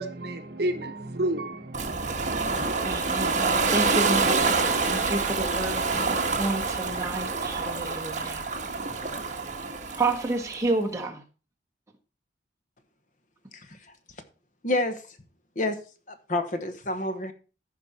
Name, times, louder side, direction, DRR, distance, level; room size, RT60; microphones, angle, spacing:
voice 1, 0.0-2.5, right 1 dB, 60° right, 1.1 m, -31 dB
Ocean, 1.7-10.6, right 4 dB, 40° right, 1.5 m, -27 dB
voice 2, 2.8-8.4 9.9-11.2, right 2 dB, 15° right, 1.5 m, -30 dB
voice 3, 14.6-15.0 15.5-15.8 16.1-17.3, left 2 dB, 45° left, 1.1 m, -28 dB
14.5 x 5.3 x 4.3 m
head